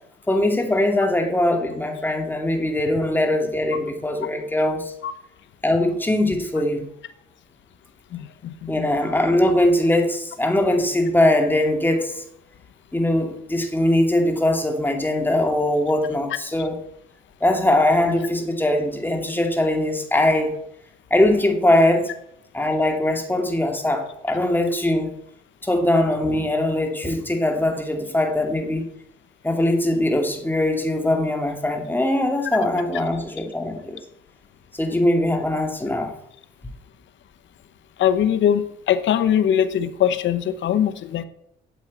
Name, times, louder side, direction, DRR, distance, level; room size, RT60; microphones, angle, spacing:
voice 1, 0.3-4.9 5.6-6.8 8.7-12.2 12.9-16.8 17.4-20.6 21.1-22.1 22.5-25.2 25.6-28.9 29.4-34.0 34.7-36.1, left 1 dB, 10° left, 3 dB, 2.4 m, -21 dB
voice 2, 8.1-8.9 38.0-41.2, left 9 dB, 70° left, 12 dB, 1.0 m, -21 dB
9.4 x 7.4 x 8.2 m, 0.75 s
cardioid pair, 90°, 20 cm